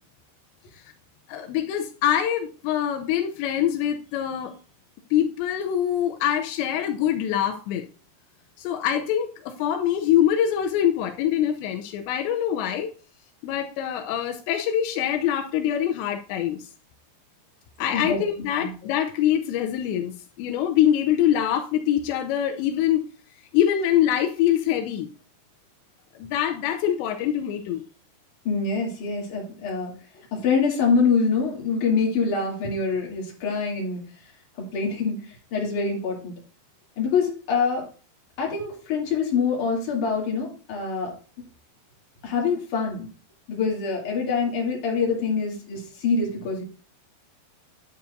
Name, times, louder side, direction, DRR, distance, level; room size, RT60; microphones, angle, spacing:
voice 1, 1.3-4.6 5.1-7.8 8.6-12.9 13.4-16.7 17.8-20.1 20.4-23.0 23.5-25.1 26.2-27.8, left 10 dB, 85° left, 2.9 m, -24 dB
voice 2, 28.5-30.0 30.3-34.1 34.6-36.4 37.0-37.9 38.4-41.1 42.2-43.1 43.5-46.6, left 5 dB, 50° left, 3.8 m, -25 dB
9.5 x 9.1 x 2.6 m
omnidirectional pair, 5.2 m